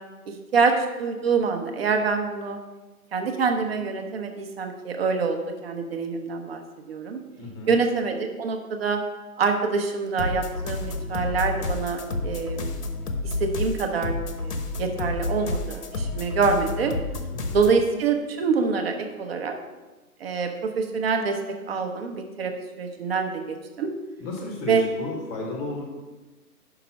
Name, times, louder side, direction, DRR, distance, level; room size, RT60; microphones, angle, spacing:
voice 1, 0.3-2.6 3.1-7.2 7.7-9.0 9.4-12.8 13.2-16.9 17.5-19.6 20.2-21.4 21.7-23.9 24.7-24.9, right 5 dB, 40° right, 5 dB, 0.9 m, -26 dB
voice 2, 7.4-7.7 17.3-17.7 24.2-25.8, left 2 dB, 10° left, 1 dB, 0.8 m, -33 dB
sound 1, 10.2-17.8, left 2 dB, 85° left, 1.2 m, -30 dB
5.8 x 5.2 x 5.8 m, 1.2 s
hypercardioid pair, 150°, 45 cm